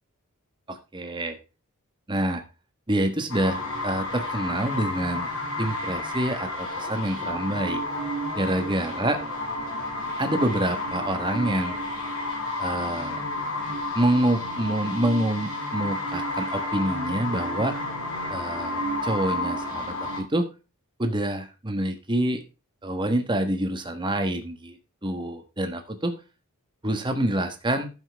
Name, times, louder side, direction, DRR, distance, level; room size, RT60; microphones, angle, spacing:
voice 1, 0.7-1.4 2.1-2.4 2.9-5.3 5.6-7.8 8.3-9.2 10.2-11.8 12.6-13.2 13.9-17.7 18.3-20.5 21.0-22.4 22.8-26.1 26.8-27.9, right 1 dB, 20° right, 7 dB, 1.3 m, -27 dB
sound 1, 3.3-20.2, left 2 dB, 60° left, 6.5 m, -31 dB
11.5 x 7.3 x 3.5 m, 0.30 s
head